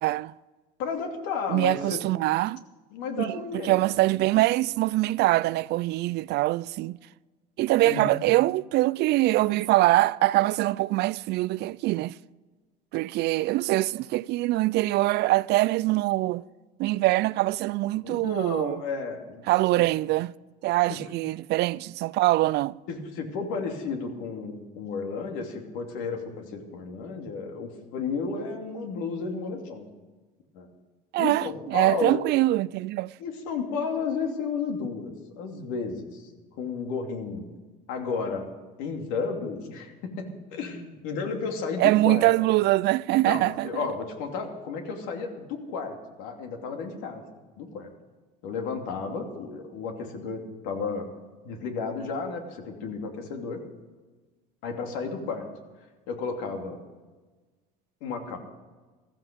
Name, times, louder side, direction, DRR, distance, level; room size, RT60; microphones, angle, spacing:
voice 1, 0.0-0.3 1.5-2.6 3.2-3.3 3.6-7.0 7.6-12.2 12.9-16.4 16.8-18.8 19.5-20.3 20.6-22.8 31.1-33.1 41.8-43.7, right 18 dB, 55° right, 0.4 m, -23 dB
voice 2, 0.8-2.0 2.9-3.8 7.8-8.1 18.0-19.4 22.9-29.9 30.5-30.7 31.2-32.2 33.2-36.3 36.6-37.5 37.9-38.5 38.8-42.3 43.3-47.2 47.6-47.9 48.4-51.1 51.4-53.6 54.6-55.5 56.1-56.8 58.0-58.4, left 5 dB, 75° left, 2.8 m, -33 dB
15.0 x 14.5 x 5.3 m
supercardioid pair, 100°, 20 cm